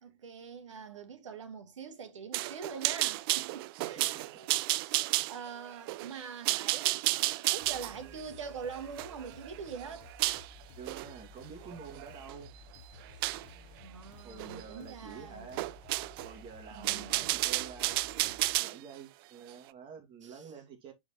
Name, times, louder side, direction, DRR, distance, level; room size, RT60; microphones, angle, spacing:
voice 1, 0.0-4.6 5.3-10.1 13.8-15.7 16.7-17.4 20.2-20.5, right 6 dB, 85° right, 1.7 m, -44 dB
sound 1, 2.3-10.5 10.9-11.1 11.6-12.3 13.2-13.5 14.4-14.6 14.9-15.0 15.6-16.3 16.7-18.8, right 19 dB, 50° right, 0.4 m, -32 dB
voice 2, 3.8-5.2 10.7-12.5 14.2-15.7 16.2-20.9, right 6 dB, 35° right, 2.4 m, -49 dB
sound 2, 7.6-18.6, left 3 dB, 50° left, 1.5 m, -54 dB
6.7 x 4.8 x 3.1 m
hypercardioid pair, 125°, 15 cm